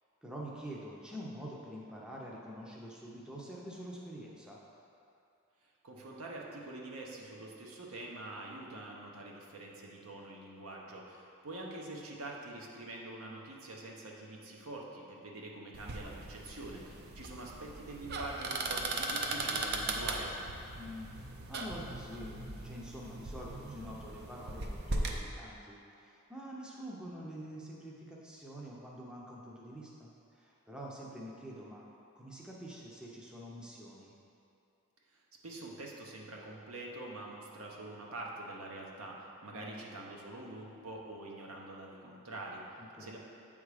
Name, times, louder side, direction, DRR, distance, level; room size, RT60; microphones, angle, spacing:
voice 1, 0.2-4.6 20.8-31.8 32.1-34.1 39.5-39.9 42.8-43.1, equal, 5° right, -4 dB, 0.6 m, -46 dB
voice 2, 5.8-20.3 35.4-42.7 43.0-43.2, right 2 dB, 70° right, -2 dB, 0.9 m, -45 dB
sound 1, 15.7-25.2, right 2 dB, 45° right, 0.5 m, -38 dB
8.1 x 3.6 x 4.8 m, 2.6 s
head